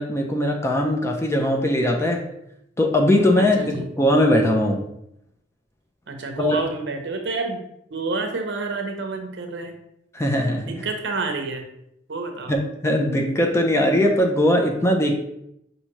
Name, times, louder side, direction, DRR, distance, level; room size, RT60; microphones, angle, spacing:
voice 1, 0.0-2.2 2.8-4.9 6.4-6.6 10.1-10.7 12.5-15.1, left 1 dB, 15° left, 2 dB, 0.4 m, -20 dB
voice 2, 3.4-3.8 6.1-7.6 7.9-9.7 10.7-11.7 12.1-12.5, right 3 dB, 65° right, 4 dB, 0.7 m, -28 dB
5.6 x 2.6 x 3.0 m, 0.78 s
head